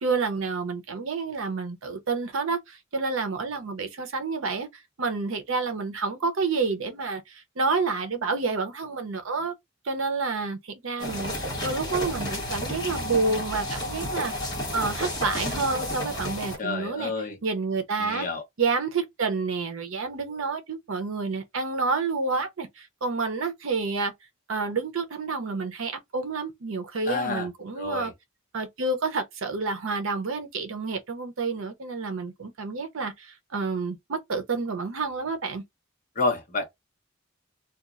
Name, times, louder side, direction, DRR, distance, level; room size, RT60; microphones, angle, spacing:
voice 1, 0.0-4.7 5.0-9.5 9.8-11.3 11.6-14.3 14.7-17.1 17.4-18.3 18.6-24.1 24.5-28.1 28.5-35.6, right 4 dB, 70° right, 0.7 m, -29 dB
sound 1, 11.0-16.6, left 1 dB, 20° left, 1.1 m, -31 dB
voice 2, 16.6-17.4 18.0-18.4 27.1-27.5 27.8-28.1 36.2-36.6, left 3 dB, 40° left, 0.8 m, -29 dB
2.8 x 2.3 x 2.4 m
head